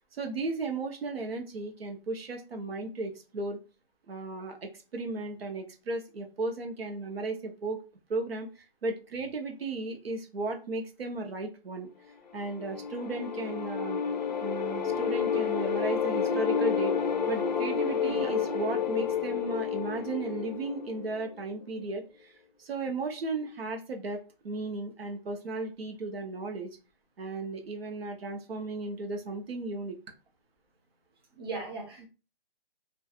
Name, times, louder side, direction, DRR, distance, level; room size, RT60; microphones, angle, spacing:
voice 1, 0.1-3.6 4.1-7.8 8.1-11.9 12.3-14.0 14.4-16.9 17.3-22.3 22.6-26.7 27.2-30.0 32.0-32.1, right 3 dB, 85° right, 0.8 m, -35 dB
sound 1, 12.3-21.4, left 7 dB, 50° left, 0.4 m, -30 dB
voice 2, 31.4-32.1, right 3 dB, 25° right, 0.5 m, -38 dB
2.3 x 2.3 x 2.7 m
hypercardioid pair, 170°, 29 cm